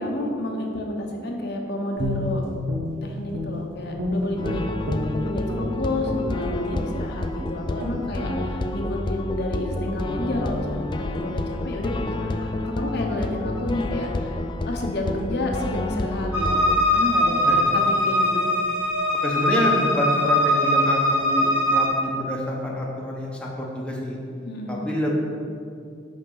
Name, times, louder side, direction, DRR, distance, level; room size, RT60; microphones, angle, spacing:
voice 1, 0.0-2.4 3.0-4.6 5.2-14.4 14.6-16.6 16.9-18.5 24.5-24.9, left 1 dB, 60° left, 1 dB, 0.8 m, -30 dB
Guitar, 2.0-3.7 4.0-5.7 6.1-6.3 6.7-7.0 7.4-7.5 7.8-8.0 8.3-8.5, left 1 dB, 85° right, 1.3 m, -29 dB
sound 1, 4.4-16.8, left 2 dB, 25° left, 0.3 m, -29 dB
sound 2, 16.3-21.9, left 1 dB, 15° right, 1.9 m, -21 dB
voice 2, 19.2-24.2 24.7-25.1, equal, 5° left, -3 dB, 0.9 m, -27 dB
5.9 x 5.3 x 5.5 m, 2.4 s
head